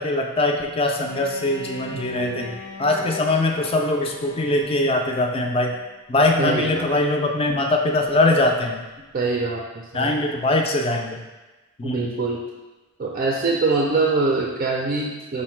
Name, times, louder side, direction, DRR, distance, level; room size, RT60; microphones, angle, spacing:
voice 1, 0.0-2.5 2.8-5.7 6.1-8.8 9.9-11.2 11.8-12.1, left 2 dB, 25° left, 2 dB, 0.4 m, -22 dB
Bowed string instrument, 0.9-5.9, left 1 dB, 75° left, 0.7 m, -39 dB
voice 2, 1.9-2.6 6.4-6.9 9.1-9.6 9.9-10.2 11.8-12.4 13.0-15.4, right 3 dB, 40° right, -1 dB, 0.4 m, -24 dB
5.2 x 2.1 x 4.4 m, 1.2 s
head